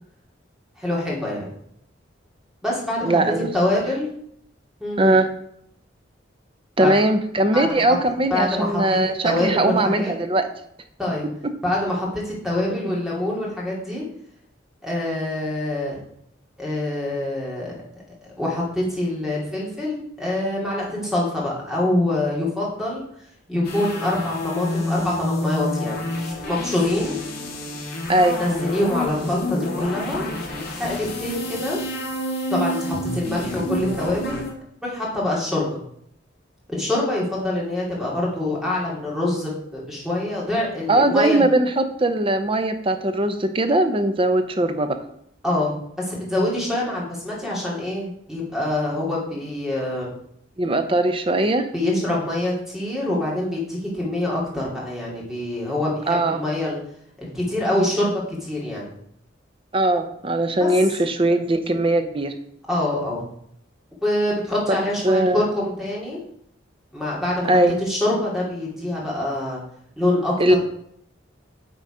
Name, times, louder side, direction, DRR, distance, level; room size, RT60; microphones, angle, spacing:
voice 1, 0.8-1.4 2.6-4.1 4.8-5.1 6.8-6.9 7.5-7.8 8.3-9.0 9.2-10.1 11.0-11.3 11.6-14.0 14.8-16.0 16.6-17.8 18.2-23.0 23.5-26.1 26.5-27.2 28.4-30.3 30.8-31.8 32.5-34.5 34.8-35.8 36.7-41.5 45.4-50.1 51.7-56.8 57.2-58.9 60.6-60.7 62.7-63.3 64.0-66.2 66.9-67.5 67.8-69.6 70.0-70.6, left 1 dB, 5° right, -4 dB, 2.2 m, -25 dB
voice 2, 3.0-3.5 5.0-5.3 6.8-10.5 28.1-28.4 40.9-45.0 50.6-51.6 56.1-56.4 59.7-62.3 64.7-64.8 65.0-65.4 67.5-67.7 70.4-70.6, right 1 dB, 30° right, 8 dB, 0.6 m, -20 dB
sound 1, 23.6-34.5, left 1 dB, 55° left, 1.8 m, -28 dB
8.3 x 4.0 x 4.9 m, 0.69 s
head